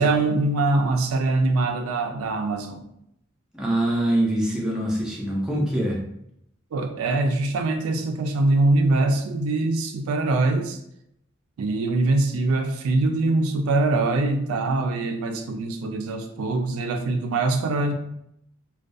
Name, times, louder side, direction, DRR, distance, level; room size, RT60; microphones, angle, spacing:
voice 1, 0.0-2.9 6.7-10.8 11.6-17.9, right 2 dB, 90° right, 5 dB, 0.3 m, -23 dB
voice 2, 3.5-6.0, right 1 dB, 5° right, -3 dB, 0.4 m, -24 dB
2.3 x 2.2 x 2.5 m, 0.75 s
head